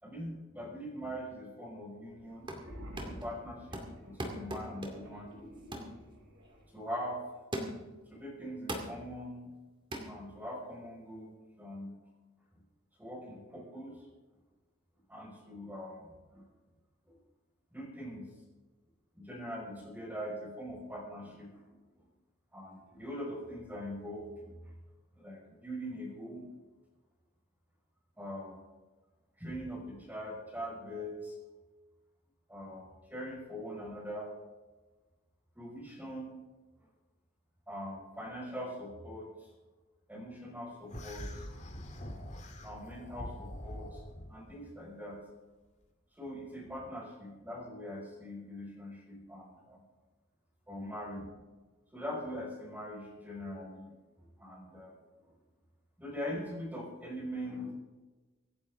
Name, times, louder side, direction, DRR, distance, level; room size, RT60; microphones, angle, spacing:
voice 1, 0.0-2.5 3.0-5.3 6.7-7.2 8.1-9.5 10.1-12.0 13.0-14.0 15.1-16.5 17.0-17.2 17.7-18.4 19.1-22.1 22.5-24.7 25.2-26.5 28.2-28.6 29.4-31.4 32.5-34.3 35.6-36.4 37.7-39.5 40.1-41.4 42.6-44.0 44.3-45.2 46.2-49.8 50.7-51.3 51.9-54.0 54.4-54.9 56.0-57.7, equal, 10° right, -2 dB, 5.3 m, -42 dB
sound 1, 2.2-2.7 3.0-3.3 3.7-5.2 5.7-6.0 6.5-6.6 7.5-8.0 8.7-9.0 9.9-10.1, right 1 dB, 25° right, 2.3 m, -39 dB
sound 2, 2.3-6.7, equal, 85° right, 6.1 m, -50 dB
sound 3, 40.9-44.3, left 1 dB, 35° left, 1.9 m, -44 dB
25.5 x 10.5 x 3.7 m, 1.2 s
head